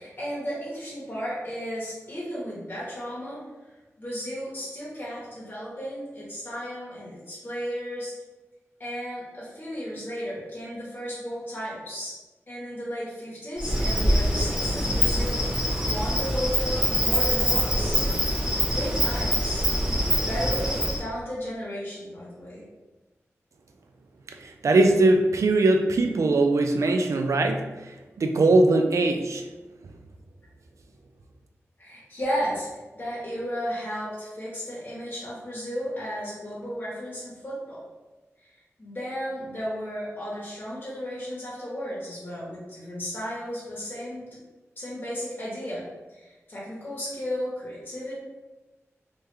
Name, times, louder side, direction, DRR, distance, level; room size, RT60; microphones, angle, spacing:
voice 1, 0.0-3.4 4.0-8.1 8.8-12.2 12.5-15.4 15.8-18.0 18.7-19.7 20.1-22.6 31.8-32.7 32.9-37.8 38.8-44.4 44.8-45.8 46.1-48.1, equal, 40° left, -8 dB, 1.1 m, -34 dB
Insect, 13.6-21.0, equal, 20° right, 1.0 m, -24 dB
voice 2, 24.4-27.7 28.2-29.4, right 2 dB, 75° right, 5 dB, 0.3 m, -21 dB
3.1 x 2.2 x 3.2 m, 1.1 s
cardioid pair, 55°, 5 cm